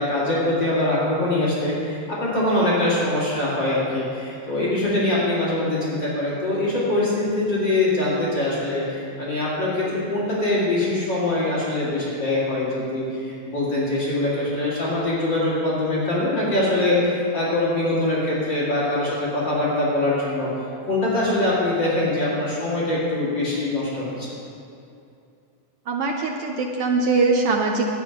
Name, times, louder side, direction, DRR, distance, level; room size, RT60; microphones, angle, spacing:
voice 1, 0.0-20.5 20.9-24.3, left 2 dB, 40° left, -8 dB, 3.0 m, -23 dB
voice 2, 25.9-27.9, right 3 dB, 75° right, 1 dB, 1.4 m, -22 dB
11.0 x 9.4 x 6.0 m, 2.6 s
omnidirectional pair, 3.4 m